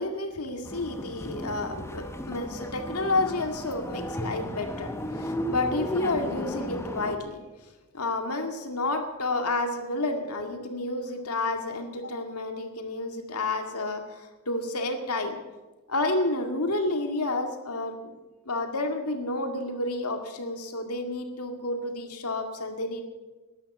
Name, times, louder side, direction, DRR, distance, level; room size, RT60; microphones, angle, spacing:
voice 1, 0.0-7.4 7.9-15.4 15.9-18.1 18.5-23.0, left 2 dB, 85° left, 6 dB, 2.1 m, -30 dB
sound 1, 0.6-7.2, equal, 10° left, 0.9 m, -35 dB
13.0 x 11.5 x 8.8 m, 1.2 s
head